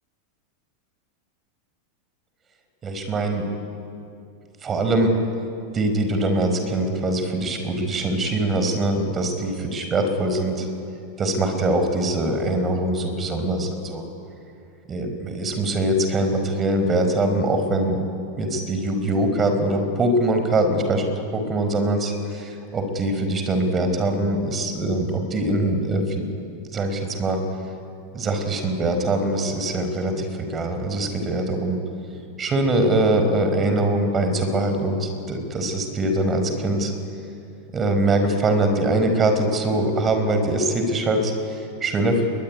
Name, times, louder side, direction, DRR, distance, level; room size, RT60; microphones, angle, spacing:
voice 1, 2.8-3.4 4.6-5.1 5.7-10.6 11.2-14.0 14.9-18.0 18.4-26.2 26.7-27.4 28.1-31.8 32.4-36.9 37.7-42.2, right 1 dB, 25° right, 6 dB, 4.9 m, -23 dB
22.5 x 21.0 x 9.7 m, 2.6 s
hypercardioid pair, 100°, 0 cm